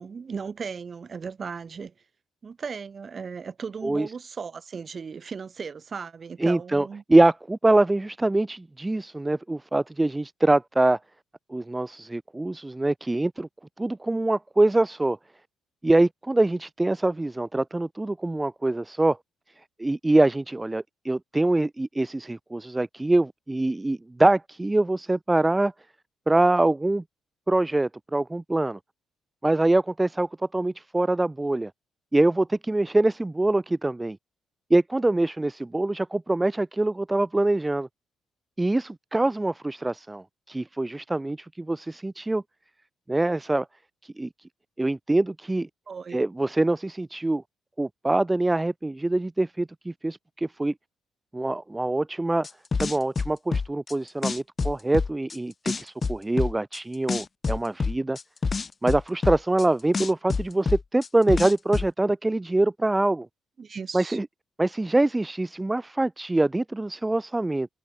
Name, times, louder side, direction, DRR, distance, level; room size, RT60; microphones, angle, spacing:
voice 1, 0.0-1.9 2.4-7.0 45.9-46.2 63.6-64.2, right 5 dB, 40° right, 4.0 m, -36 dB
voice 2, 6.4-11.0 11.5-13.5 13.8-15.2 15.8-19.2 19.8-25.7 26.3-27.0 27.5-28.8 29.4-31.7 32.1-34.2 34.7-37.9 38.6-42.4 43.1-43.7 44.2-44.3 44.8-45.7 46.1-47.4 47.8-50.7 51.3-52.5 52.8-58.2 58.8-63.3 63.9-64.3 64.6-67.7, right 2 dB, 15° right, 1.6 m, -24 dB
sound 1, 52.4-53.9 54.2-55.4 55.7-56.8 57.1-59.6 59.9-61.9, left 4 dB, 35° left, 0.7 m, -27 dB
cardioid pair, 90°, 0 cm